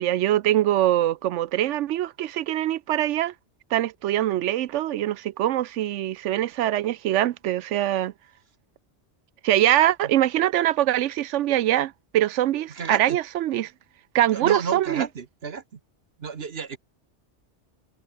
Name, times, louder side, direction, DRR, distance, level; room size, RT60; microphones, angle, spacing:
voice 1, 0.0-3.3 3.7-8.1 9.4-13.7 14.1-15.1, right 13 dB, 80° right, 0.9 m, -23 dB
voice 2, 12.7-13.2 14.3-15.8 16.2-16.8, right 6 dB, 55° right, 1.4 m, -31 dB
open air
omnidirectional pair, 1.2 m